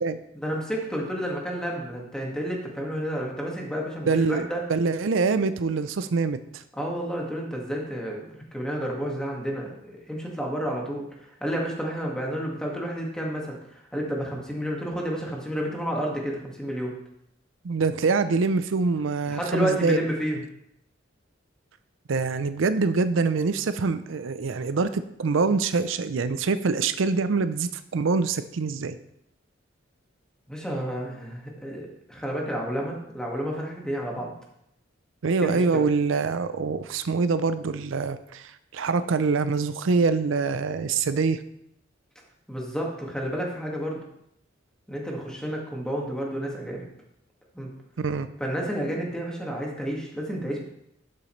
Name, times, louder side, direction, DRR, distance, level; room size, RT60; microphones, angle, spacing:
voice 1, 0.4-4.6 6.7-8.2 8.5-11.1 11.4-16.9 19.3-20.4 30.5-34.3 35.4-35.9 42.5-44.0 44.9-46.9 47.5-47.7 48.4-50.6, equal, 5° left, -2 dB, 1.8 m, -30 dB
voice 2, 4.1-6.6 17.6-20.0 22.1-29.0 35.2-41.4 48.0-48.3, right 4 dB, 85° right, 12 dB, 0.5 m, -25 dB
12.0 x 6.9 x 3.2 m, 0.78 s
head